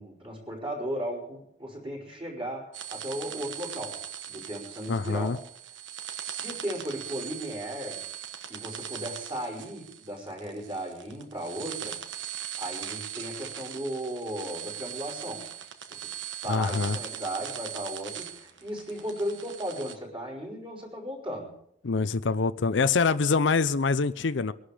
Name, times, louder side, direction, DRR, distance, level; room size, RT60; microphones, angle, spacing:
voice 1, 0.0-4.0 4.3-5.3 6.2-8.1 8.5-12.0 12.6-15.5 15.9-21.5, equal, 30° right, -3 dB, 5.0 m, -36 dB
sound 1, 2.7-20.0, right 10 dB, 65° right, 1.2 m, -40 dB
voice 2, 4.9-5.4 16.5-17.0 21.8-24.5, left 4 dB, 65° left, 13 dB, 0.6 m, -25 dB
23.0 x 11.5 x 5.0 m, 0.73 s
head